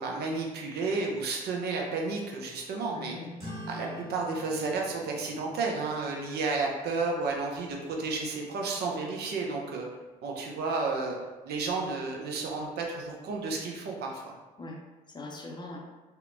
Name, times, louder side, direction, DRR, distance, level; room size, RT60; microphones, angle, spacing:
voice 1, 0.0-3.1 3.7-9.9 10.2-11.2 11.5-14.3, right 3 dB, 60° right, 0 dB, 0.5 m, -32 dB
voice 2, 2.9-3.4 14.6-15.8, left 2 dB, 25° left, 0 dB, 0.5 m, -42 dB
sound 1, 3.4-8.2, equal, 35° right, 1.4 m, -47 dB
2.8 x 2.1 x 2.5 m, 1.2 s
hypercardioid pair, 55°, 19 cm